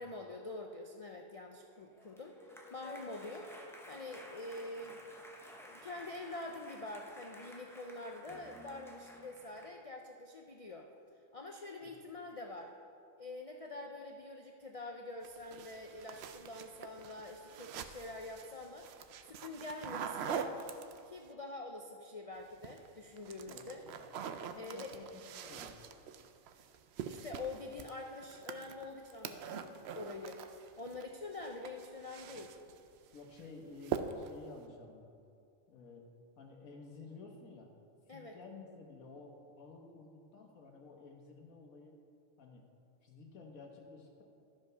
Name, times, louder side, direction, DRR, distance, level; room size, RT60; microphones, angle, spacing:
voice 1, 0.0-2.4 2.7-3.5 3.9-5.0 5.5-10.9 11.3-12.7 13.2-18.9 19.2-20.7 21.1-23.8 24.5-25.0 27.0-30.4 30.8-32.5 38.1-38.4, left 2 dB, 65° left, 2 dB, 0.3 m, -46 dB
sound 1, 1.9-9.7, equal, ahead, 0.7 m, -53 dB
sound 2, 15.2-21.3 22.4-22.9 23.2-31.1 31.3-32.8 33.2-33.5 33.8-34.4, right 7 dB, 65° right, 0.7 m, -44 dB
voice 2, 23.5-24.1 24.4-25.8 33.1-35.1 35.7-36.1 36.4-37.7 38.1-42.0 42.4-42.6 43.0-44.2, left 3 dB, 90° left, 1 dB, 1.7 m, -53 dB
12.5 x 5.2 x 5.5 m, 2.4 s
omnidirectional pair, 1.4 m